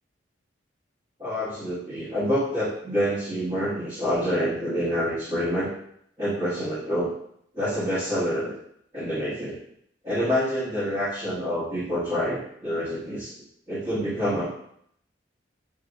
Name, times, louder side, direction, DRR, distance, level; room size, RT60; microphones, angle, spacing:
voice 1, 1.2-5.7 6.2-7.1 7.5-8.5 8.9-9.6 10.0-13.3 13.7-14.5, equal, 25° right, -13 dB, 1.4 m, -27 dB
6.6 x 2.9 x 2.4 m, 0.70 s
head